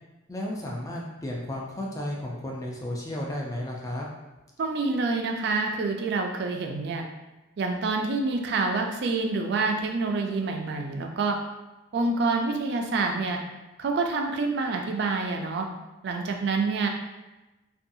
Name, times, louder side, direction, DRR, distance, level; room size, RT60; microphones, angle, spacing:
voice 1, 0.3-4.1, left 1 dB, 15° left, -2 dB, 0.4 m, -33 dB
voice 2, 4.6-7.0 7.6-11.4 11.9-13.4 13.8-15.7 16.0-16.9, right 3 dB, 60° right, 3 dB, 0.3 m, -27 dB
2.6 x 2.3 x 2.6 m, 1.1 s
head